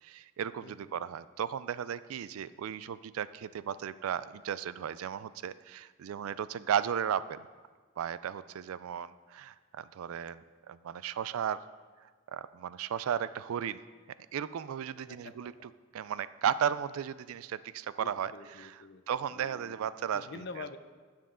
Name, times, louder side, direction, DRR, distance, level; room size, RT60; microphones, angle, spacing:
voice 1, 0.0-7.4 8.0-10.4 10.7-11.6 12.3-13.8 14.3-15.5 15.9-18.3 18.6-18.7 19.1-20.3, right 8 dB, 90° right, 16 dB, 0.3 m, -35 dB
voice 2, 0.6-1.1 15.1-15.5 18.0-19.0 19.3-20.8, left 4 dB, 50° left, 10 dB, 0.5 m, -47 dB
12.5 x 7.6 x 3.7 m, 1.5 s
head